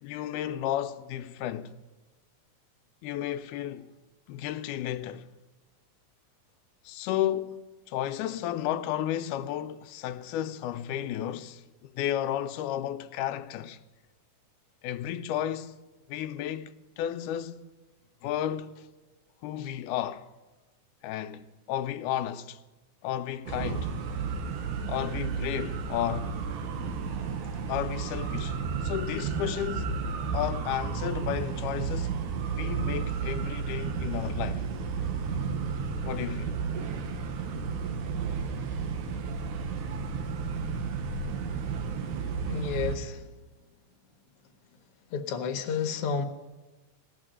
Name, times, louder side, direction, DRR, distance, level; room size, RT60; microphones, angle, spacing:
voice 1, 0.0-1.8 3.0-3.9 4.3-5.3 6.9-7.6 7.9-13.8 14.8-15.8 16.1-17.7 18.2-18.9 19.4-20.3 21.0-22.6 23.0-23.9 24.9-26.4 27.7-30.0 30.3-32.2 32.6-34.6 36.0-36.6, left 11 dB, 90° left, 2.1 m, -33 dB
sound 1, 23.5-43.0, right 5 dB, 80° right, 2.5 m, -32 dB
voice 2, 42.5-43.4 45.1-46.2, left 6 dB, 60° left, 1.7 m, -31 dB
17.5 x 6.3 x 10.0 m
omnidirectional pair, 3.5 m